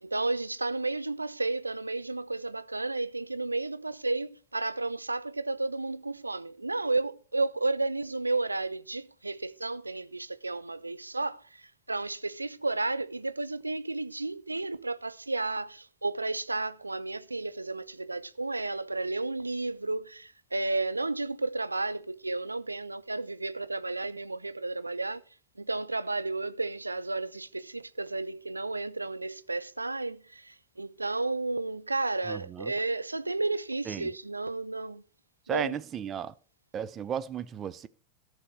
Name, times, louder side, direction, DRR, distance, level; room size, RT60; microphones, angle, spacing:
voice 1, 0.0-25.2 25.6-35.0 35.5-35.8, right 2 dB, 80° right, 0.4 m, -32 dB
voice 2, 32.3-32.7 33.9-34.1 35.5-36.3 36.7-37.9, right 9 dB, 25° right, 0.6 m, -34 dB
14.0 x 6.5 x 4.5 m
figure-of-eight pair, 90°, 0 cm